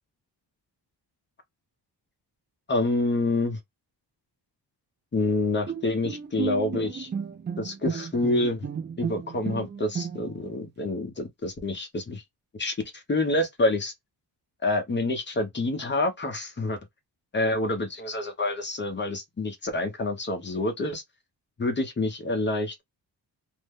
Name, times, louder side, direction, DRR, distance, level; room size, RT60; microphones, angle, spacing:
voice 1, 2.7-3.6 5.1-7.1 7.6-8.7 9.0-12.2 12.6-13.9 14.6-16.8 17.3-21.0 21.6-22.8, left 2 dB, 25° left, 0.7 m, -27 dB
Bowed string instrument, 5.7-10.5, right 6 dB, 30° right, 0.4 m, -33 dB
2.6 x 2.1 x 3.5 m
wide cardioid pair, 160°, 42 cm